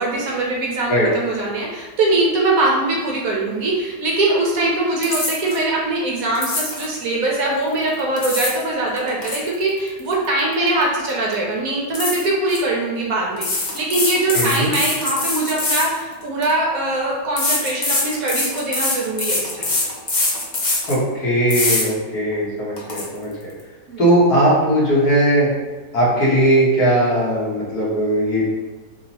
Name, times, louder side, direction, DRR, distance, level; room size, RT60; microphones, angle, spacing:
voice 1, 0.0-19.8 23.9-24.0, right 2 dB, 65° right, -2 dB, 1.1 m, -22 dB
sound 1, 5.0-5.6 6.4-6.9 7.9-8.6 9.0-10.8 11.1-11.3 11.9-12.6 13.4-16.5 17.4-21.0 21.5-21.9 22.3-22.4 22.8-23.0, left 2 dB, 45° left, 0.6 m, -23 dB
voice 2, 14.3-14.7 20.9-23.3 24.0-25.5 25.9-28.4, right 1 dB, 60° left, -6 dB, 1.8 m, -18 dB
3.6 x 2.8 x 4.1 m, 1.3 s
omnidirectional pair, 1.8 m